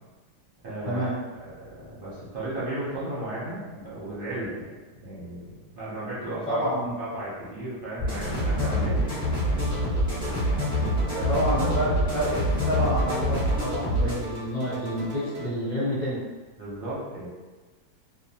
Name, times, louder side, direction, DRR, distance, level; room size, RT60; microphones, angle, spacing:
voice 1, 0.6-1.1 1.4-4.7 5.0-6.7 7.0-9.1 11.1-11.3 16.5-17.3, right 1 dB, 45° right, -8 dB, 0.8 m, -35 dB
voice 2, 6.5-7.0 11.3-16.2, equal, 30° left, -11 dB, 1.0 m, -28 dB
sound 1, 8.0-14.1, equal, 5° left, 0.8 m, -26 dB
sound 2, 9.6-10.0 10.2-12.0 12.2-14.0 14.2-15.5, right 3 dB, 80° right, 1.2 m, -41 dB
2.8 x 2.1 x 2.8 m, 1.3 s
omnidirectional pair, 1.9 m